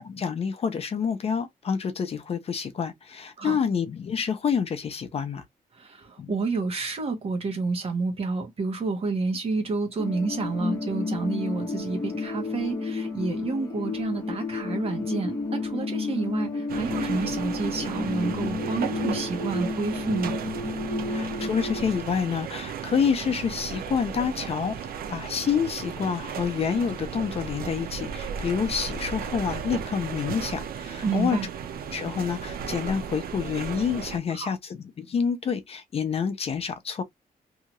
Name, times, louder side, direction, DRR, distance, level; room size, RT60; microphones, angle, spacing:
voice 1, 0.0-5.4 6.2-6.3 21.0-31.4 31.9-37.0, left 6 dB, 40° left, 0.5 m, -28 dB
voice 2, 5.7-20.4 31.0-31.5 34.3-34.5, right 4 dB, 40° right, 1.0 m, -29 dB
sound 1, 10.0-21.9, left 3 dB, 25° left, 0.9 m, -31 dB
sound 2, 16.7-34.2, right 7 dB, 80° right, 0.6 m, -35 dB
2.8 x 2.4 x 2.9 m
wide cardioid pair, 180°, 15 cm